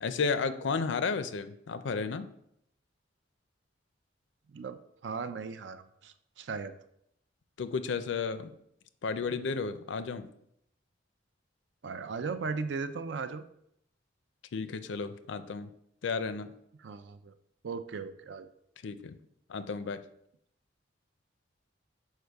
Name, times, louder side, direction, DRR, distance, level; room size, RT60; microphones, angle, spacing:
voice 1, 0.0-2.3 7.6-8.5 9.0-10.3 14.5-15.7 16.0-16.5 18.8-19.2 19.5-20.0, left 5 dB, 75° left, 12 dB, 0.5 m, -33 dB
voice 2, 4.5-6.7 11.8-13.4 16.8-17.3 17.6-18.5, right 5 dB, 65° right, 11 dB, 0.4 m, -37 dB
6.5 x 4.6 x 3.4 m, 0.75 s
head